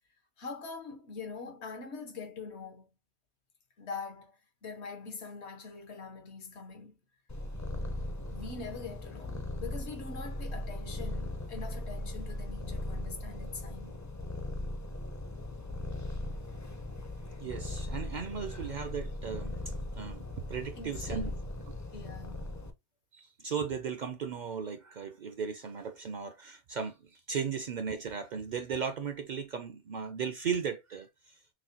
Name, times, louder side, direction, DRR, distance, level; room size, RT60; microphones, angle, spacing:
voice 1, 0.4-2.9 3.8-7.0 8.3-14.0 20.8-21.4 21.9-22.6, left 4 dB, 75° left, 1.3 m, -43 dB
Purr, 7.3-22.7, left 1 dB, 25° left, 0.4 m, -39 dB
voice 2, 17.4-21.3 23.1-31.4, right 6 dB, 60° right, 0.5 m, -36 dB
6.0 x 2.2 x 2.8 m
omnidirectional pair, 1.1 m